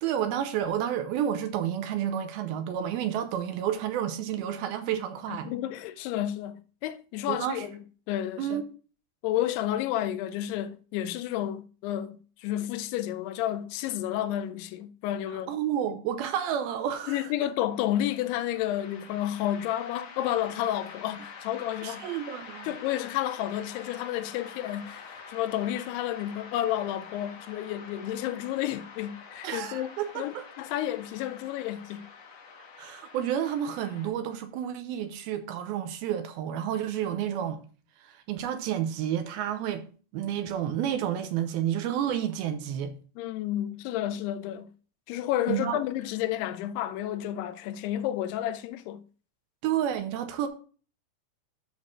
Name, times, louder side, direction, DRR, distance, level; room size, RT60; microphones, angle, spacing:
voice 1, 0.0-5.5 7.3-7.7 8.4-8.6 15.5-17.2 21.8-22.8 29.4-30.4 32.8-37.6 38.0-39.9 40.1-42.9 45.5-45.8 49.6-50.5, right 10 dB, 80° right, 2.4 m, -30 dB
voice 2, 5.3-8.6 9.2-15.5 17.1-22.1 22.6-29.9 30.2-32.1 43.2-44.7 45.1-49.0, left 12 dB, 85° left, 2.6 m, -31 dB
sound 1, 17.7-34.1, left 5 dB, 65° left, 1.6 m, -47 dB
12.5 x 6.3 x 2.4 m
omnidirectional pair, 4.6 m